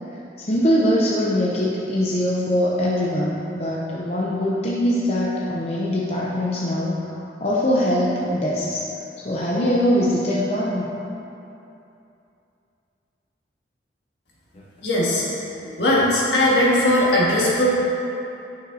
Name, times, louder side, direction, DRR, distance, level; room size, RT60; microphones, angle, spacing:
voice 1, 0.4-7.0 7.4-8.8 9.2-10.9 14.5-14.6, equal, 35° left, -5 dB, 0.7 m, -22 dB
voice 2, 14.8-15.3 15.6-17.7, left 1 dB, 75° left, -6 dB, 1.7 m, -19 dB
9.1 x 6.8 x 2.8 m, 2.8 s
head